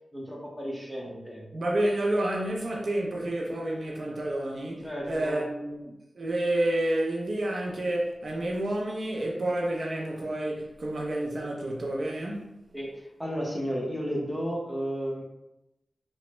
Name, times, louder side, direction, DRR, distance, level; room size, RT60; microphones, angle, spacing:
voice 1, 0.1-1.5 4.8-5.4 12.7-15.2, equal, 5° right, 0.7 m, -33 dB
voice 2, 1.5-12.5, right 1 dB, 50° right, 0.4 m, -29 dB
3.0 x 2.1 x 3.0 m
wide cardioid pair, 115°, 0 cm